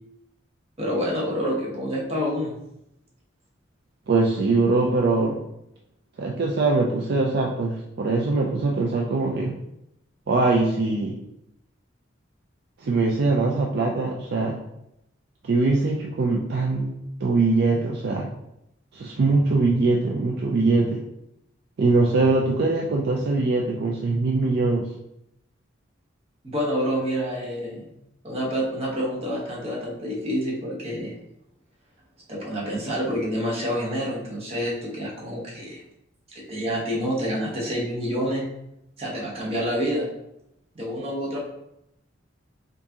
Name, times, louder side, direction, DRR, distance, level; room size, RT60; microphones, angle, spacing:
voice 1, 0.8-2.5 26.4-27.8 28.2-31.1 32.3-35.8 36.5-38.4 39.0-40.1 40.7-41.4, equal, 30° right, -3 dB, 1.0 m, -27 dB
voice 2, 4.1-5.4 6.2-9.6 10.3-11.2 12.8-14.6 15.4-18.3 18.9-21.0 21.8-24.9, right 3 dB, 55° right, -1 dB, 0.4 m, -22 dB
4.5 x 2.6 x 2.8 m, 0.82 s
head